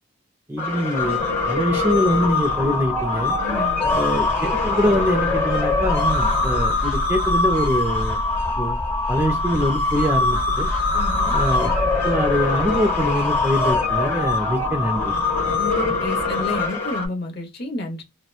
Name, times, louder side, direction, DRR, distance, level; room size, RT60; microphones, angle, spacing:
voice 1, 0.5-1.2 1.5-3.4 3.9-8.2 8.6-8.8 9.1-10.7 11.3-11.7 12.0-15.1, equal, 10° right, 0.3 m, -23 dB
sound 1, 0.6-17.1, left 3 dB, 15° left, 1.0 m, -22 dB
voice 2, 3.4-4.0 10.9-11.3 15.6-18.0, left 1 dB, 50° left, 0.8 m, -30 dB
2.8 x 2.1 x 2.2 m
head